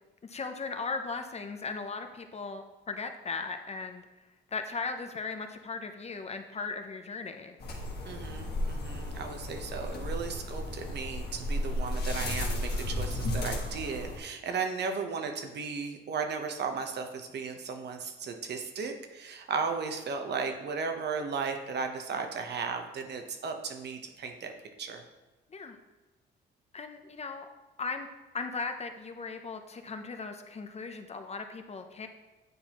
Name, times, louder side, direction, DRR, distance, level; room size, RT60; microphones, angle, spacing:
voice 1, 0.2-4.0 4.5-7.6 25.5-25.8 26.7-27.5 27.8-28.1 28.3-32.1, left 4 dB, 35° left, 6 dB, 0.6 m, -37 dB
sound 1, 7.6-14.2, left 1 dB, 55° left, 1.4 m, -34 dB
voice 2, 8.0-24.5 24.8-25.0, right 5 dB, 60° right, 5 dB, 0.8 m, -35 dB
9.2 x 4.1 x 3.0 m, 1.1 s
cardioid pair, 90°, 20 cm